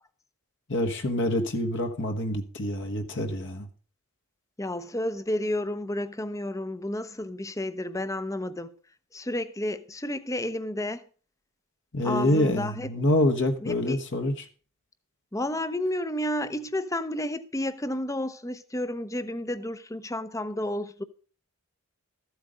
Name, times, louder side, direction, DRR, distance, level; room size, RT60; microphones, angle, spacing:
voice 1, 0.7-3.7 11.9-14.5, left 1 dB, 55° left, 1.3 m, -26 dB
voice 2, 4.6-8.7 9.1-11.1 12.0-12.9 13.6-14.0 15.3-21.0, left 1 dB, 15° left, 0.7 m, -31 dB
13.5 x 8.1 x 5.1 m
head